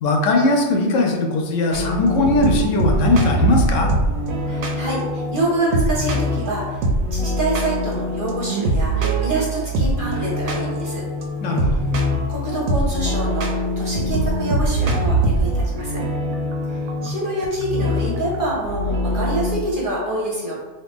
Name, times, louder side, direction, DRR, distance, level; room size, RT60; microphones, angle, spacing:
voice 1, 0.0-3.9 11.4-11.8, left 2 dB, 75° left, 2 dB, 0.9 m, -19 dB
sound 1, 1.7-19.6, right 1 dB, 90° right, 1.0 m, -23 dB
voice 2, 4.5-6.8 7.1-11.0 11.6-11.8 12.3-16.0 16.7-20.5, right 1 dB, 50° right, -4 dB, 0.7 m, -26 dB
2.8 x 2.6 x 3.4 m, 1.3 s
omnidirectional pair, 1.4 m